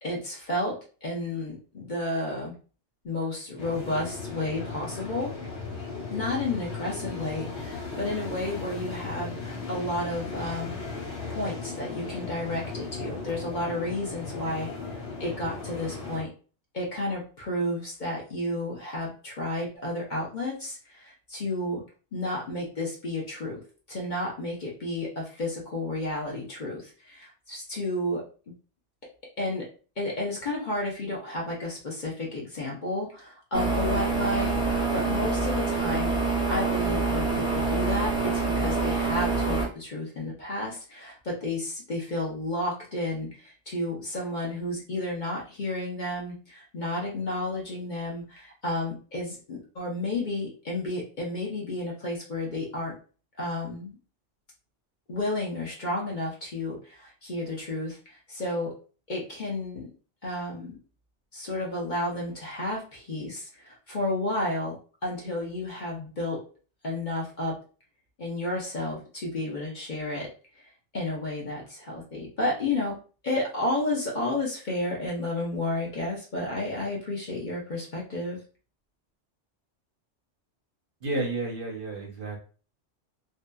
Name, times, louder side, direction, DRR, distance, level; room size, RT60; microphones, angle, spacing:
voice 1, 0.0-0.7 1.0-2.5 3.0-5.3 6.1-9.4 9.7-10.8 11.3-16.3 16.7-21.8 22.1-23.6 23.9-28.2 29.4-29.6 30.0-36.2 36.5-52.9 53.4-54.0 55.1-58.7 59.1-59.9 60.2-60.7 61.3-66.4 66.8-67.5 68.2-70.3 70.6-73.0 73.2-78.4, left 1 dB, 45° left, -3 dB, 0.7 m, -32 dB
sound 1, 3.6-16.2, left 4 dB, 65° left, 1.2 m, -37 dB
sound 2, 33.5-39.7, right 3 dB, 5° right, 0.3 m, -26 dB
voice 2, 81.0-82.4, right 2 dB, 55° right, -1 dB, 0.7 m, -31 dB
2.7 x 2.3 x 2.2 m, 0.38 s
omnidirectional pair, 1.3 m